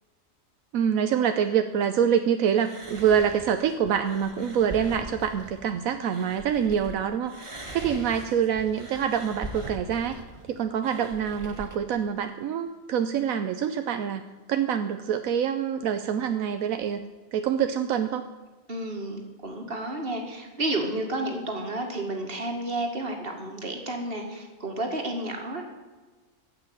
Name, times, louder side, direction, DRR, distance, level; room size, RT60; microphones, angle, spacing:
voice 1, 0.7-10.2 10.5-17.0 17.3-18.2, right 8 dB, 80° right, 8 dB, 1.1 m, -26 dB
sound 1, 2.6-6.9 7.3-11.8, right 1 dB, 25° right, 1.4 m, -41 dB
voice 2, 18.7-25.7, right 1 dB, 45° right, 3 dB, 2.2 m, -31 dB
15.0 x 5.9 x 9.2 m, 1.3 s
omnidirectional pair, 1.4 m